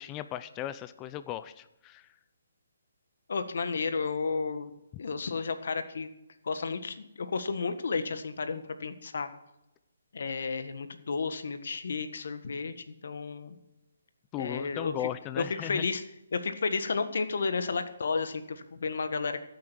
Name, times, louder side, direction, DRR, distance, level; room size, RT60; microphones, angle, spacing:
voice 1, 0.0-2.1 14.3-15.8, left 12 dB, 15° left, 13 dB, 0.5 m, -37 dB
voice 2, 3.3-4.7 5.0-6.1 6.4-9.3 10.1-13.5 14.4-14.9 15.3-16.0 16.3-19.4, left 4 dB, 65° left, 10 dB, 1.6 m, -32 dB
14.5 x 8.7 x 6.3 m, 0.90 s
hypercardioid pair, 165°, 0 cm